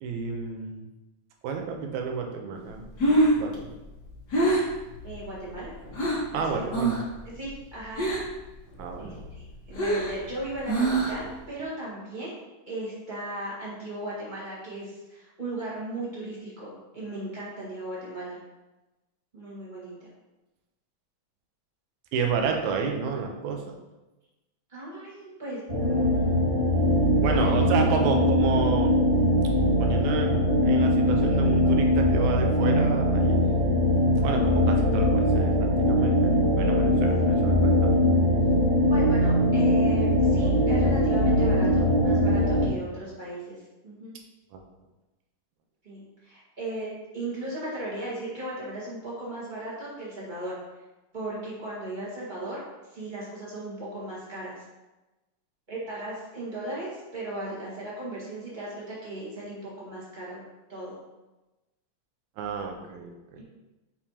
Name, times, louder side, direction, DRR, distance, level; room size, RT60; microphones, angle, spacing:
voice 1, 0.0-0.9 1.4-2.9 3.4-3.7 6.3-7.0 8.8-9.3 22.1-23.8 27.2-29.0 29.8-33.4 34.2-37.9 44.5-44.6 62.4-63.4, right 5 dB, 75° right, 2 dB, 2.1 m, -31 dB
Breathing, 2.7-6.3 6.7-7.2 7.4-8.4 8.8-11.4, right 1 dB, 60° left, 1.1 m, -25 dB
voice 2, 5.0-5.8 6.3-6.7 7.3-8.1 9.0-12.4 12.7-18.4 19.3-20.1 24.7-26.4 27.1-27.6 28.0-28.1 33.4-33.6 37.2-37.4 38.9-44.2 45.8-50.6 51.1-52.6 52.9-54.6 55.7-60.4 60.7-61.0 63.4-63.5, right 1 dB, 25° right, -7 dB, 1.0 m, -37 dB
sound 1, 25.7-42.7, equal, 55° right, 0.3 m, -21 dB
7.1 x 4.7 x 2.8 m, 1.1 s
omnidirectional pair, 3.5 m